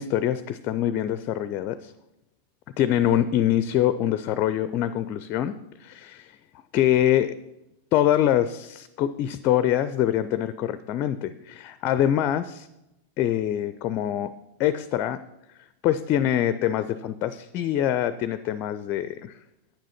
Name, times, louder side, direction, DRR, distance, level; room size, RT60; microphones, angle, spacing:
voice 1, 0.0-1.9 2.8-6.3 6.7-7.4 7.9-12.7 13.2-14.3 14.6-15.2 15.8-19.4, left 11 dB, 40° left, 14 dB, 0.4 m, -24 dB
8.9 x 7.4 x 5.7 m, 0.91 s
figure-of-eight pair, 90°, 0 cm